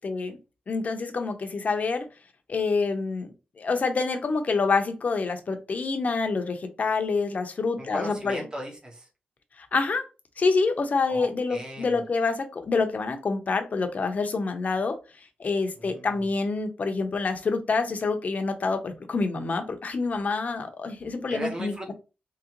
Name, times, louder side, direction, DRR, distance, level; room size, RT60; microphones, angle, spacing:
voice 1, 0.0-0.4 0.7-2.0 2.5-8.5 9.6-10.0 10.4-15.0 15.4-21.7, left 4 dB, 50° left, 6 dB, 0.7 m, -27 dB
voice 2, 7.8-9.1 11.1-12.0 15.8-16.1 21.3-21.9, right 1 dB, 25° right, -1 dB, 1.3 m, -37 dB
3.9 x 3.0 x 2.9 m, 0.31 s
wide cardioid pair, 105°, 3 cm